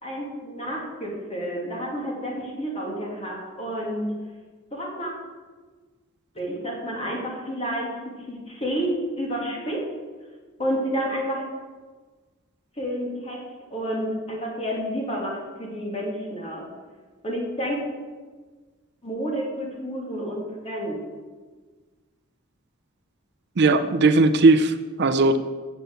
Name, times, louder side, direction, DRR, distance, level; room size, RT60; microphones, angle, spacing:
voice 1, 0.0-4.1 4.7-5.1 6.3-7.9 8.3-9.9 10.6-11.4 12.8-13.4 13.7-16.6 17.2-17.8 19.0-21.0, equal, 30° left, -3 dB, 2.8 m, -30 dB
voice 2, 23.6-25.4, right 3 dB, 50° right, 8 dB, 0.5 m, -18 dB
8.1 x 6.7 x 7.9 m, 1.4 s
head